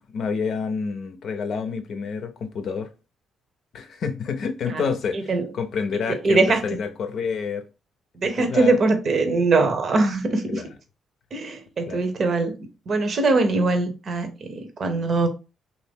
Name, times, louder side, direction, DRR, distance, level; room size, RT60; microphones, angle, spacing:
voice 1, 0.1-2.9 3.7-7.7 8.2-8.8 10.5-10.7 11.9-12.0, left 5 dB, 70° left, 0.6 m, -28 dB
voice 2, 6.2-6.6 8.2-10.6 11.3-12.5 12.9-15.3, right 3 dB, 55° right, 0.8 m, -21 dB
2.9 x 2.6 x 3.5 m
supercardioid pair, 65°, 0 cm